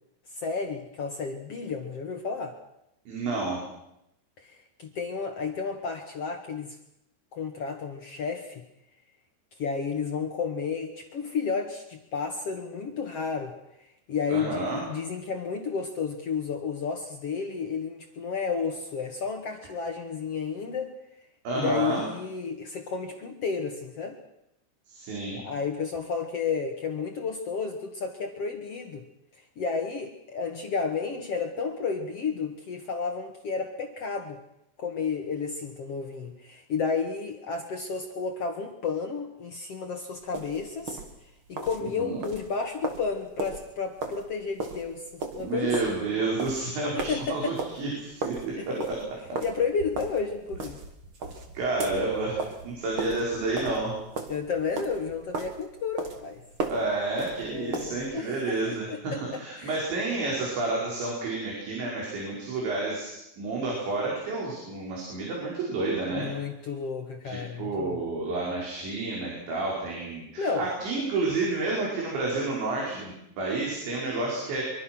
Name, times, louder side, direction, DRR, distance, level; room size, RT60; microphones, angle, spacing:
voice 1, 0.3-2.6 4.4-6.8 7.3-8.6 9.6-13.5 14.1-20.9 21.5-24.2 25.3-29.0 29.6-34.4 34.8-41.0 41.5-45.8 47.1-47.5 48.6-49.1 49.4-50.8 54.3-56.4 57.5-60.0 66.1-68.0 70.4-70.7, left 5 dB, 65° left, 4 dB, 1.5 m, -32 dB
voice 2, 3.1-3.6 14.3-14.8 21.5-22.1 24.9-25.4 42.0-42.2 45.4-49.0 51.6-54.0 56.7-66.3 67.2-74.6, right 3 dB, 70° right, -3 dB, 7.5 m, -30 dB
sound 1, 40.2-58.1, right 3 dB, 40° right, 2.0 m, -37 dB
24.5 x 24.0 x 6.2 m, 0.82 s
omnidirectional pair, 5.3 m